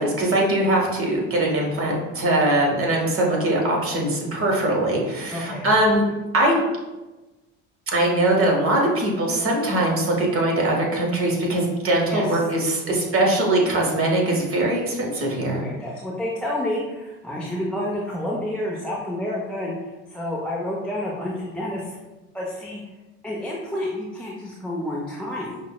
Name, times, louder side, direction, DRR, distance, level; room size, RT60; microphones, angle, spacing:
voice 1, 0.2-6.1 6.3-6.6 7.9-15.6, right 1 dB, 30° right, -1 dB, 1.1 m, -21 dB
voice 2, 5.3-5.7 12.0-12.5 15.5-22.0 22.3-22.8 23.2-25.6, left 1 dB, 5° left, -4 dB, 0.4 m, -29 dB
5.3 x 2.1 x 2.3 m, 1.1 s
hypercardioid pair, 60°, 41 cm